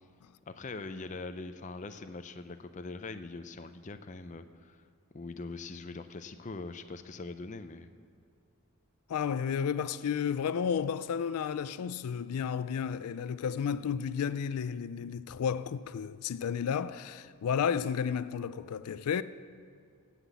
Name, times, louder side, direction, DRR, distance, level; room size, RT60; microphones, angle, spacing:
voice 1, 0.5-4.8 5.1-7.9, left 3 dB, 35° left, 0.5 m, -42 dB
voice 2, 9.1-19.2, left 7 dB, 90° left, 0.4 m, -32 dB
16.0 x 5.9 x 8.3 m
head